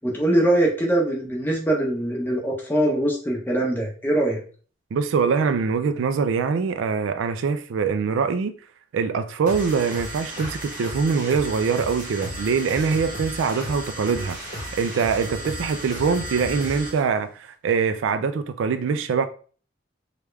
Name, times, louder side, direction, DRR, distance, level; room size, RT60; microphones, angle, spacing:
voice 1, 0.0-4.4, right 1 dB, 10° left, 0.8 m, -22 dB
voice 2, 4.9-8.5 8.9-14.4 14.7-19.3, right 5 dB, 70° right, 0.3 m, -23 dB
sound 1, 9.5-17.0, equal, 40° right, 1.0 m, -34 dB
3.4 x 2.3 x 3.1 m
head